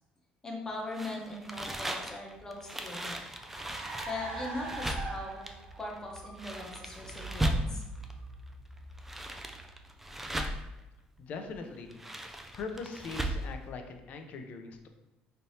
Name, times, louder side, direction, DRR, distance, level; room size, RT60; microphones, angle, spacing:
voice 1, 0.4-3.2 4.1-5.5 5.8-7.8, left 2 dB, 15° left, -1 dB, 0.9 m, -40 dB
sound 1, 0.9-8.1 8.8-10.8 11.7-13.5, right 1 dB, 10° right, 0.3 m, -37 dB
Car, 2.3-10.1, right 3 dB, 50° right, 0.8 m, -44 dB
voice 2, 11.2-12.0 12.5-14.9, left 4 dB, 55° left, 6 dB, 0.5 m, -41 dB
4.1 x 3.3 x 2.7 m, 0.98 s
cardioid pair, 130°, 3 cm